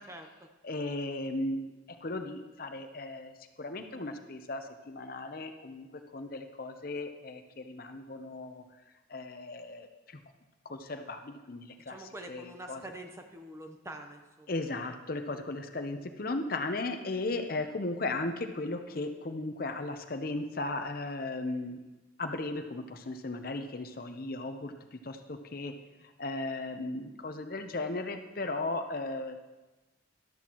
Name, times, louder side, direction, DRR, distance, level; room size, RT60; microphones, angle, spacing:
voice 1, 0.6-1.7 2.0-5.9 6.1-8.6 9.1-10.2 10.6-12.8 14.5-21.8 22.2-25.7 26.0-29.4, left 2 dB, 50° left, 7 dB, 0.7 m, -36 dB
voice 2, 11.9-14.5, right 1 dB, 15° right, 4 dB, 0.8 m, -45 dB
13.5 x 12.0 x 3.0 m, 1.1 s
head